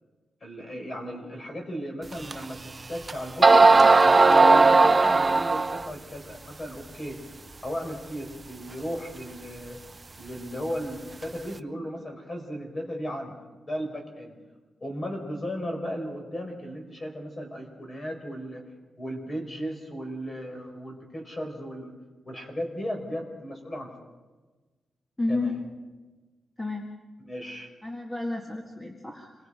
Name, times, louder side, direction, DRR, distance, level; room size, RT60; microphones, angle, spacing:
voice 1, 0.4-2.6 2.9-3.7 4.0-7.2 7.6-9.8 10.2-13.4 13.7-14.3 14.8-18.6 19.0-22.0 22.2-23.9 25.3-25.6 27.2-27.7, equal, 25° left, 2 dB, 5.0 m, -35 dB
sound 1, 2.3-2.4 3.1-3.2 3.4-5.9, right 3 dB, 20° right, 0.6 m, -17 dB
voice 2, 25.2-25.6 26.6-27.0 27.8-29.3, left 2 dB, 10° left, 1 dB, 1.9 m, -31 dB
27.5 x 23.0 x 5.1 m, 1.2 s
wide cardioid pair, 165°, 0 cm